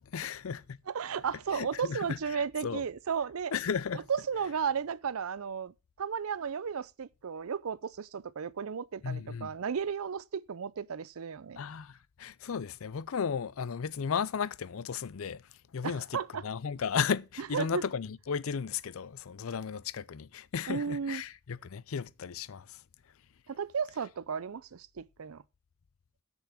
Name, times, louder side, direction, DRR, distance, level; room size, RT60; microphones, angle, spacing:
voice 1, 0.1-0.8 1.5-2.8 3.5-4.0 9.0-9.6 11.6-15.4 15.7-22.8, left 6 dB, 70° left, 0.5 m, -35 dB
voice 2, 0.9-3.5 4.1-11.6 15.8-16.4 17.4-17.8 20.7-21.2 23.5-25.4, right 6 dB, 80° right, 0.5 m, -34 dB
8.1 x 6.9 x 6.1 m
head